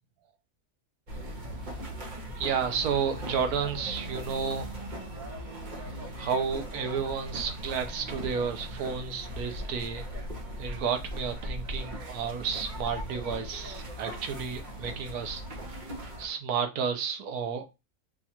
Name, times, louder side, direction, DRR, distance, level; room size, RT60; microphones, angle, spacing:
sound 1, 1.1-16.3, right 1 dB, 40° right, 0.9 m, -39 dB
voice 1, 2.4-4.7 6.2-10.1 10.6-15.4 16.2-17.7, right 6 dB, 80° right, 1.2 m, -31 dB
4.3 x 2.4 x 2.8 m
omnidirectional pair, 1.6 m